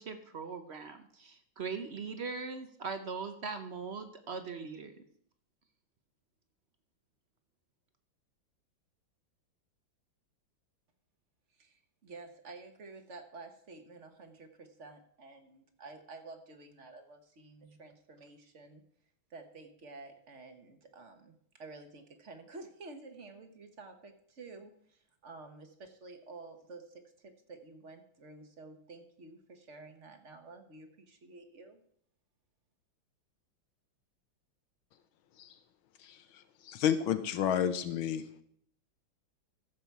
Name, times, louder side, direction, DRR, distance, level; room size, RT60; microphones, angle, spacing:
voice 1, 0.0-4.9, right 5 dB, 60° right, 8 dB, 0.6 m, -40 dB
voice 2, 11.6-18.8 19.3-31.8, right 3 dB, 45° right, 7 dB, 1.2 m, -51 dB
voice 3, 36.6-38.2, left 9 dB, 90° left, 11 dB, 1.7 m, -30 dB
14.5 x 7.2 x 4.6 m, 0.67 s
omnidirectional pair, 2.2 m